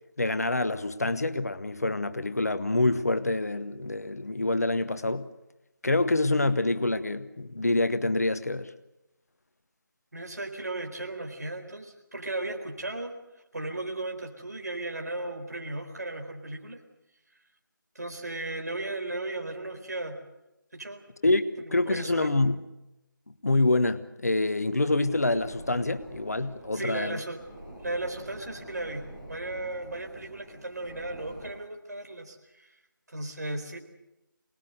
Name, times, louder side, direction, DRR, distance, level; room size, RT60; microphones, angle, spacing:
voice 1, 0.2-5.3 5.8-8.7 21.2-22.6 23.4-27.2, left 2 dB, 45° left, 1.2 m, -26 dB
voice 2, 10.1-16.8 17.9-20.2 20.7-21.0 21.6-22.3 26.7-27.4 27.8-32.7 33.1-33.8, right 2 dB, 50° right, 4.3 m, -36 dB
sound 1, 25.0-31.5, right 1 dB, ahead, 5.1 m, -46 dB
24.5 x 20.0 x 8.0 m
figure-of-eight pair, 165°, 11 cm